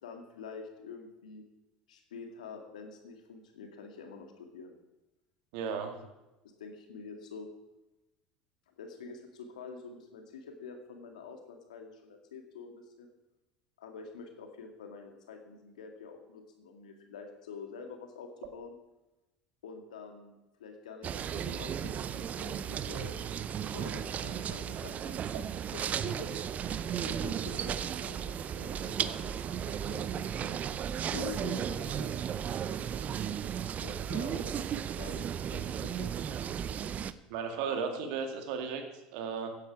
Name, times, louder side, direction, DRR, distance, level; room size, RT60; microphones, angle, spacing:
voice 1, 0.0-1.4 1.9-4.7 6.4-7.5 8.7-13.1 13.8-18.7 19.6-20.3 20.6-23.1 23.7-25.2 25.7-26.3 27.0-30.6 31.0-32.1 33.8-36.4 37.7-37.8, left 5 dB, 85° left, 5 dB, 2.0 m, -47 dB
voice 2, 5.5-6.0 37.3-38.8 39.1-39.6, right 6 dB, 70° right, 5 dB, 2.2 m, -35 dB
sound 1, 21.0-37.1, right 8 dB, 40° right, 0.6 m, -35 dB
16.0 x 9.8 x 4.8 m, 0.99 s
hypercardioid pair, 75°, 4 cm